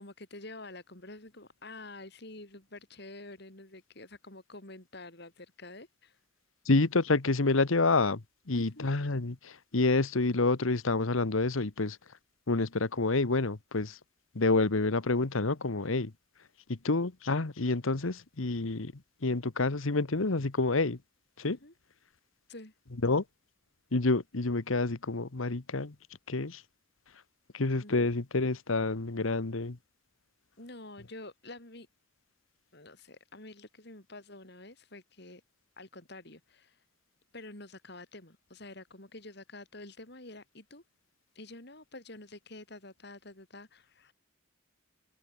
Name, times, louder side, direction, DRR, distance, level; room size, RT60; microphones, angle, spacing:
voice 1, 0.0-6.2 8.5-8.9 21.4-21.7 22.5-22.7 27.8-28.0 30.6-31.9 32.7-35.4 35.8-36.8 37.3-40.8 41.3-44.1, left 2 dB, 55° left, 3.7 m, -48 dB
voice 2, 6.6-12.0 12.5-14.0 14.3-16.1 16.7-21.0 21.4-21.6 23.0-23.2 23.9-25.9 26.3-26.6 27.5-29.8, left 3 dB, 80° left, 1.2 m, -28 dB
open air
head